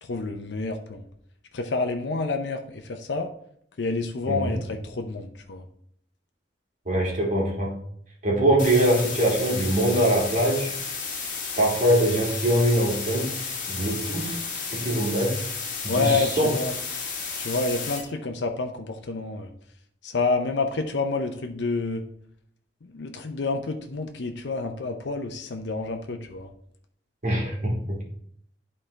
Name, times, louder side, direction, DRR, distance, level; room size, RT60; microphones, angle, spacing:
voice 1, 0.0-1.1 1.5-3.3 3.8-5.6 15.9-16.7 17.4-19.5 20.0-22.0 22.9-26.5, left 3 dB, 80° left, 5 dB, 0.6 m, -28 dB
voice 2, 6.9-7.7 8.2-10.7 11.6-14.4 14.7-15.4 15.8-16.5 27.2-28.0, right 1 dB, 45° right, -3 dB, 2.5 m, -23 dB
sound 1, 8.6-18.0, left 5 dB, 50° left, 1.5 m, -33 dB
11.0 x 4.3 x 3.3 m, 0.68 s
head